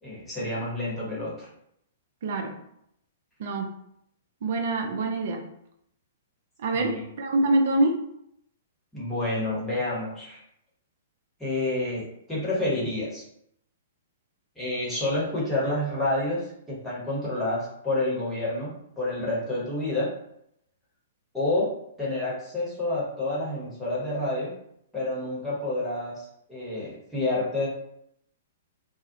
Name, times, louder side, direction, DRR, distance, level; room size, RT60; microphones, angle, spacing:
voice 1, 0.0-1.5 6.7-7.1 8.9-10.4 11.4-13.2 14.6-20.1 21.3-24.6 24.9-27.7, left 2 dB, 5° left, -8 dB, 1.1 m, -29 dB
voice 2, 2.2-2.5 3.4-3.7 4.4-5.4 6.6-6.9 7.2-7.9, right 2 dB, 55° right, 3 dB, 0.4 m, -24 dB
2.4 x 2.0 x 2.7 m, 0.74 s
figure-of-eight pair, 110°, 0 cm